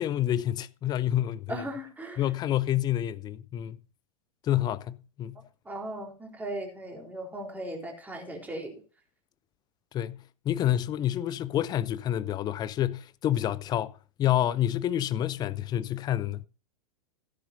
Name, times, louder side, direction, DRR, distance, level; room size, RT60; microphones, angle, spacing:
voice 1, 0.0-1.6 2.2-3.8 4.4-5.4 9.9-13.9 14.2-16.4, left 12 dB, 20° left, 0.6 m, -28 dB
voice 2, 1.5-2.2 5.6-8.8, right 1 dB, 10° right, 4.0 m, -37 dB
16.5 x 10.0 x 2.7 m
figure-of-eight pair, 95°, 19 cm